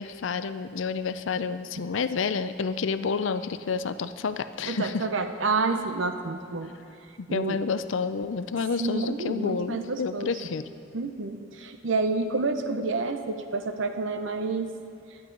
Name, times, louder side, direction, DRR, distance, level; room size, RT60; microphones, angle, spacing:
voice 1, 0.0-5.1 7.2-10.6, left 5 dB, 70° left, 12 dB, 0.5 m, -29 dB
voice 2, 4.7-6.7 7.3-7.6 8.8-10.3 10.9-14.7, right 3 dB, 70° right, 7 dB, 0.7 m, -29 dB
17.0 x 11.5 x 3.9 m, 2.6 s
head